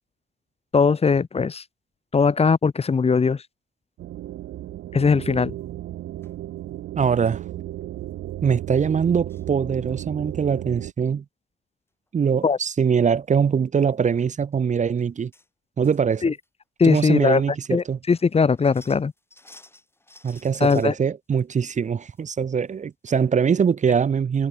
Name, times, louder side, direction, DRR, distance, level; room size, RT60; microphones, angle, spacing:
voice 1, 0.7-1.6 2.1-3.4 4.9-5.5 12.4-12.6 16.2-16.3 16.8-17.4 17.7-19.1 20.6-20.9, left 5 dB, 30° left, 1.2 m, -20 dB
sound 1, 4.0-10.9, right 14 dB, 80° right, 1.6 m, -34 dB
sound 2, 5.2-5.6 6.2-6.3 7.2-7.4 7.8-7.9 8.1-8.3 9.0-9.5 9.9-10.3 12.1-12.2 12.4-12.7 13.1-13.2 13.9-14.1 14.5-14.6 15.0-15.5 15.8-16.5 16.8-16.9 17.5-17.6 17.9-20.9 21.4-22.3 22.6-22.7 23.2-23.3 23.5-23.7, left 2 dB, 10° left, 5.8 m, -53 dB
voice 2, 7.0-7.4 8.4-11.2 12.1-15.3 15.8-16.3 16.8-18.0 20.2-24.5, right 6 dB, 35° right, 0.9 m, -22 dB
cardioid pair, 90°, 20 cm